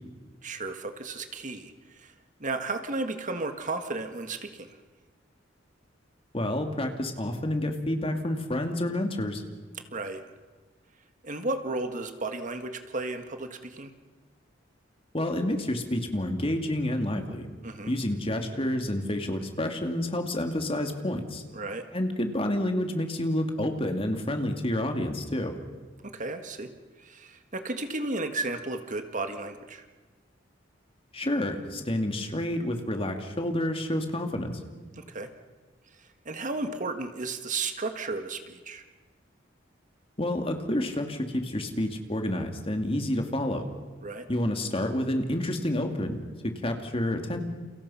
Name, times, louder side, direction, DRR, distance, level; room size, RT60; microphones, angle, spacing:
voice 1, 0.4-2.1 2.4-4.8 9.9-10.2 11.2-13.9 17.6-17.9 21.5-21.9 26.0-26.7 27.0-29.9 35.0-35.3 36.0-38.8 44.0-44.3, right 3 dB, 40° right, 7 dB, 1.7 m, -34 dB
voice 2, 6.3-9.4 15.1-17.5 17.9-21.4 21.9-25.5 31.1-34.6 40.2-43.6 44.3-47.4, left 1 dB, 30° left, 4 dB, 2.7 m, -29 dB
30.0 x 29.5 x 5.8 m, 1.3 s
head